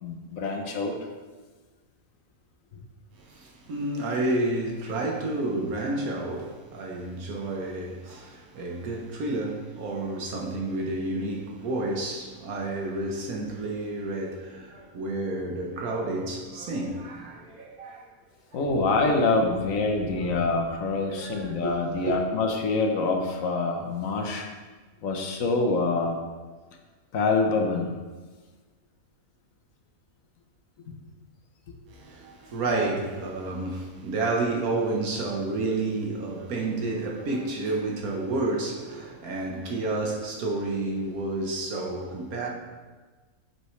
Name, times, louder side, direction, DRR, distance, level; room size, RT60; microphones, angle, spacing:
voice 1, 0.0-1.0 18.5-24.5 25.0-26.2 27.1-27.9 30.9-31.0, left 3 dB, 70° left, 1.3 m, -26 dB
voice 2, 3.1-18.1 21.0-21.7 22.0-22.2 31.8-42.5, right 2 dB, 80° right, 1.6 m, -30 dB
8.2 x 6.0 x 3.2 m
omnidirectional pair, 1.5 m